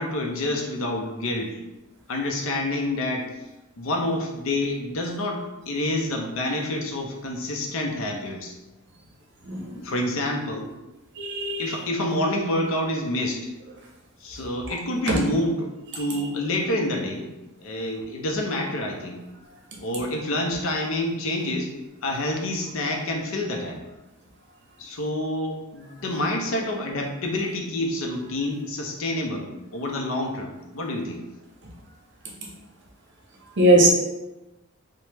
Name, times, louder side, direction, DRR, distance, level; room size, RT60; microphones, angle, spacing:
voice 1, 0.0-1.6 2.1-3.4 3.8-8.5 9.8-10.7 11.6-13.5 14.2-15.7 16.0-17.3 17.6-19.2 19.8-21.7 22.0-23.8 24.8-31.2, left 1 dB, 65° left, 1 dB, 0.5 m, -28 dB
voice 2, 9.5-9.8 11.2-11.8 15.1-15.2 16.1-16.2 33.6-33.9, right 1 dB, 60° right, -1 dB, 0.7 m, -20 dB
3.2 x 2.1 x 2.9 m, 1.0 s
head